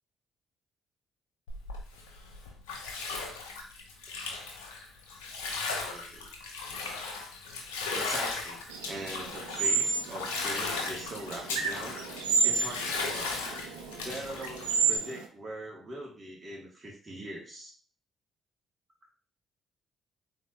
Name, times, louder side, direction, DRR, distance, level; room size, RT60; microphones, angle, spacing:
Bathtub (filling or washing), 1.5-15.0, left 3 dB, 90° left, 0.7 m, -37 dB
voice 1, 5.8-6.3 7.9-12.0 12.4-13.3 14.0-17.7, right 1 dB, 35° right, -1 dB, 2.2 m, -42 dB
sound 1, 8.7-15.2, right 5 dB, 90° right, 0.5 m, -31 dB
4.3 x 3.6 x 3.1 m, 0.40 s
hypercardioid pair, 50°, 0 cm